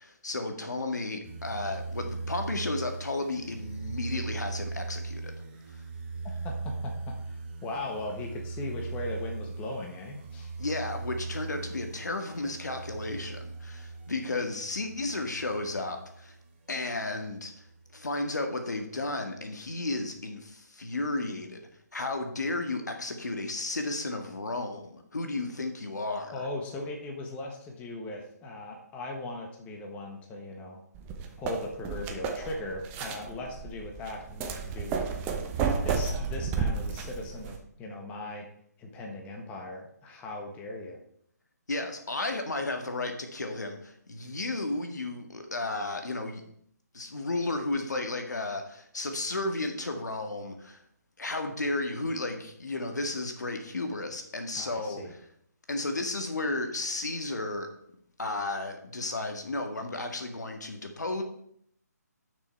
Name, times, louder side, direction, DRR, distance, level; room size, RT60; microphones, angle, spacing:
voice 1, 0.0-5.3 5.7-5.8 10.6-16.4 16.7-17.7 17.9-26.5 41.7-46.4 46.9-50.8 51.2-55.2 55.7-57.7 58.2-61.2, left 2 dB, 75° left, 5 dB, 1.8 m, -33 dB
sound 1, 1.2-16.5 17.0-18.1, right 3 dB, 35° right, 1.5 m, -39 dB
voice 2, 6.4-10.5 26.3-30.8 31.4-35.1 35.6-38.5 38.8-41.0 54.6-55.1, left 2 dB, 15° left, 1 dB, 1.3 m, -38 dB
sound 2, 31.0-37.6, right 5 dB, 20° right, 0.9 m, -32 dB
11.0 x 6.1 x 4.5 m, 0.68 s
figure-of-eight pair, 150°, 9 cm